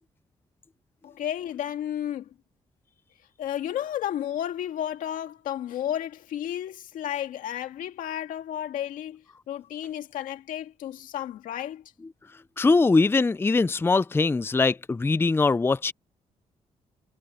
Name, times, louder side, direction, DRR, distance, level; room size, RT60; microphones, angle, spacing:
voice 1, 1.0-2.3 3.4-11.9, left 11 dB, 85° left, 2.1 m, -32 dB
voice 2, 12.6-15.9, left 3 dB, 15° left, 0.5 m, -22 dB
cardioid pair, 75°, 13 cm